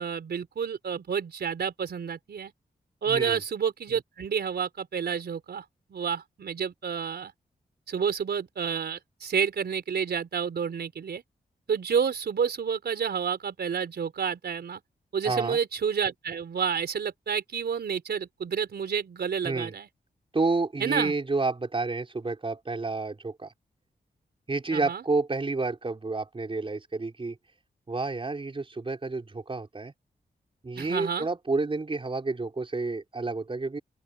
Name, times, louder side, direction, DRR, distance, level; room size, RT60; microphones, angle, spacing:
voice 1, 0.0-2.5 3.0-5.6 5.9-7.3 7.9-11.2 11.7-14.8 15.1-19.9 20.8-21.1 24.7-25.0 30.8-31.3, right 7 dB, 90° right, 4.5 m, -29 dB
voice 2, 3.1-3.4 15.2-15.6 19.4-19.7 20.3-23.5 24.5-27.4 27.9-29.9 30.6-33.8, right 3 dB, 35° right, 4.6 m, -30 dB
open air
wide cardioid pair, 105°, 16 cm